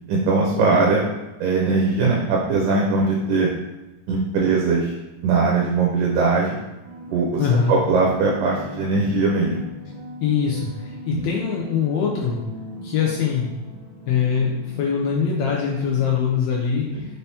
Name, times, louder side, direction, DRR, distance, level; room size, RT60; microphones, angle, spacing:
voice 1, 0.1-1.0 1.4-3.5 4.1-4.9 5.2-6.6 7.1-7.4 7.7-9.6 11.1-11.2 16.9-17.1, right 3 dB, 90° right, -2 dB, 2.3 m, -20 dB
sound 1, 6.8-16.1, equal, 50° right, 1.3 m, -38 dB
voice 2, 7.4-7.8 10.2-12.4 12.8-13.5 14.1-16.9, left 6 dB, 90° left, -2 dB, 1.5 m, -22 dB
5.5 x 3.4 x 2.7 m, 1.0 s
omnidirectional pair, 3.7 m